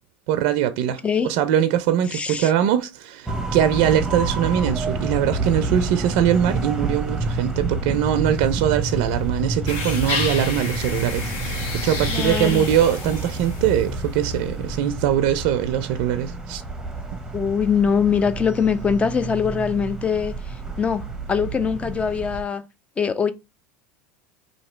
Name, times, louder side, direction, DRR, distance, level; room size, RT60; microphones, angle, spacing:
voice 1, 0.3-16.6, right 10 dB, 65° right, 0.5 m, -22 dB
voice 2, 2.1-2.5 12.1-12.6 17.3-21.0 21.3-22.6 23.0-23.3, left 6 dB, 20° left, 0.6 m, -22 dB
sound 1, 3.3-22.4, right 3 dB, 10° right, 0.9 m, -29 dB
sound 2, 9.7-14.0, left 4 dB, 60° left, 1.3 m, -30 dB
2.8 x 2.8 x 4.3 m
supercardioid pair, 105°, 6 cm